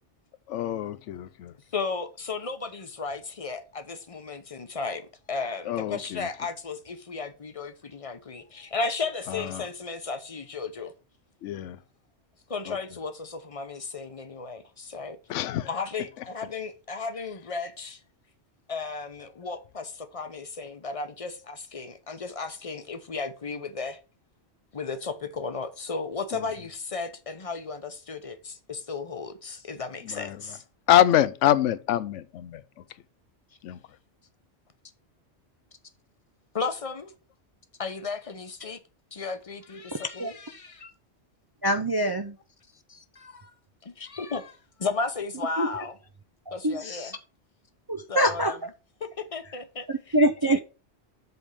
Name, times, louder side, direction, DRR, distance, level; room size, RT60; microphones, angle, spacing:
voice 1, 0.5-1.5 5.7-6.0 11.4-11.8 15.3-15.7 30.2-30.3 30.9-32.6 33.6-33.8, left 12 dB, 90° left, 0.9 m, -24 dB
voice 2, 1.7-10.9 12.5-15.2 15.7-18.0 18.7-24.0 24.7-30.6 36.5-37.1 37.8-38.8 39.1-40.8 42.9-43.5 43.8-45.9 46.5-47.1 48.1-48.6 49.2-50.1 50.4-50.6, left 4 dB, 30° left, 0.9 m, -34 dB
voice 3, 39.9-40.3 40.8-40.9 41.6-42.4 45.6-45.7 46.5-47.1 47.9-48.6 49.9-50.6, right 1 dB, 35° right, 0.4 m, -25 dB
8.0 x 3.6 x 6.5 m
omnidirectional pair, 1.2 m